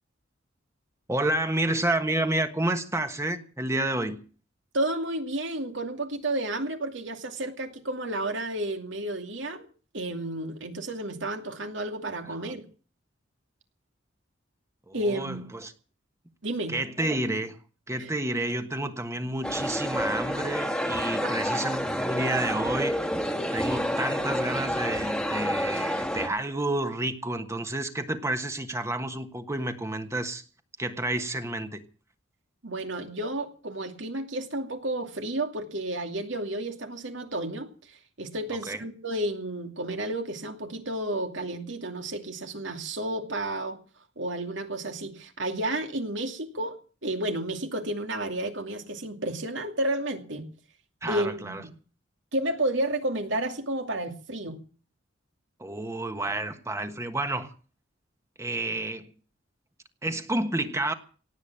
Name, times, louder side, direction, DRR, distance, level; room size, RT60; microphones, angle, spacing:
voice 1, 1.1-4.2 14.9-15.7 16.7-17.6 17.9-23.0 23.5-30.4 30.8-31.8 38.7-38.8 51.0-51.6 55.6-57.5 58.4-59.1 60.0-60.9, right 1 dB, 15° right, 8 dB, 1.4 m, -30 dB
voice 2, 4.7-9.7 9.9-12.6 14.9-15.4 16.4-16.7 18.0-18.1 21.2-21.3 32.6-43.8 44.2-46.8 47.0-50.5 51.1-51.7 52.3-54.6, right 1 dB, 70° right, 5 dB, 2.5 m, -31 dB
sound 1, 19.4-26.3, equal, 5° left, 1.6 m, -29 dB
17.5 x 8.4 x 8.7 m, 0.40 s
head